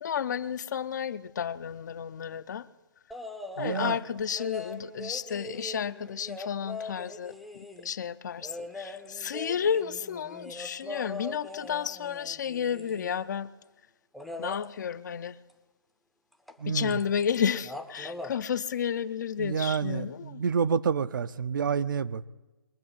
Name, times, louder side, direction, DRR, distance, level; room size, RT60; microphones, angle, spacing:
voice 1, 0.0-2.7 3.6-13.5 14.4-15.4 16.7-20.4, left 7 dB, 50° left, 15 dB, 0.5 m, -32 dB
sound 1, 3.1-4.0 4.4-7.9 8.4-13.3 14.1-14.6 16.5-16.6 16.9-17.4 17.6-18.3 19.7-19.8, left 2 dB, ahead, 0.6 m, -41 dB
voice 2, 3.6-4.0 16.6-17.0 19.4-22.3, right 6 dB, 55° right, 14 dB, 0.6 m, -28 dB
21.5 x 7.6 x 7.2 m, 1.1 s
figure-of-eight pair, 145°, 13 cm